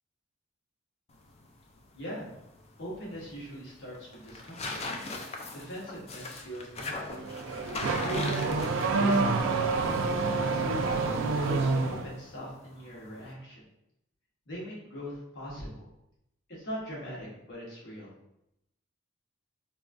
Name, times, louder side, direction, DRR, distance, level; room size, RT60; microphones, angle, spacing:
sound 1, 1.1-13.3, left 2 dB, 30° left, 0.3 m, -42 dB
voice 1, 1.9-2.3 2.8-4.8 5.5-7.3 8.0-8.5 9.0-10.8 11.4-13.6 14.5-15.9 16.5-18.1, equal, 60° left, -5 dB, 1.1 m, -41 dB
Car / Accelerating revving vroom, 7.1-12.1, right 3 dB, 65° right, 0.4 m, -28 dB
3.9 x 2.3 x 2.5 m, 0.82 s
head